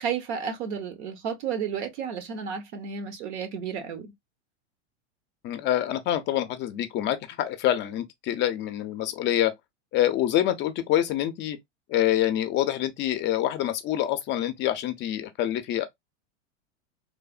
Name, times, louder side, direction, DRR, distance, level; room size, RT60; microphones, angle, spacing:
voice 1, 0.0-4.1, right 7 dB, 70° right, 1.0 m, -32 dB
voice 2, 5.4-9.5 9.9-11.6 11.9-15.9, left 12 dB, 35° left, 0.4 m, -26 dB
3.2 x 2.0 x 2.3 m
supercardioid pair, 120°, 35 cm